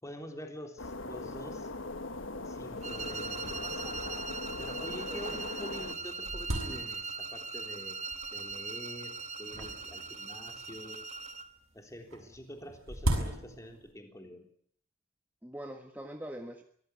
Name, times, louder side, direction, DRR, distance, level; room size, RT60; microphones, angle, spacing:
voice 1, 0.0-1.7 2.4-4.3 4.6-8.1 8.3-9.1 9.4-11.0 11.7-14.5, equal, 15° left, 3 dB, 3.6 m, -46 dB
sound 1, 0.8-5.9, left 2 dB, 65° left, 1.5 m, -40 dB
sound 2, 2.8-11.5, right 4 dB, 35° right, 1.2 m, -40 dB
sound 3, 3.3-3.4 3.6-3.7 4.4-4.5 5.1-5.2 5.6-7.4 8.1-8.6 9.5-10.8 12.1-13.9, right 1 dB, 85° right, 6.7 m, -36 dB
voice 2, 5.1-5.8 15.4-16.6, right 1 dB, 10° right, 3 dB, 1.5 m, -44 dB
24.5 x 18.5 x 8.4 m, 0.63 s
head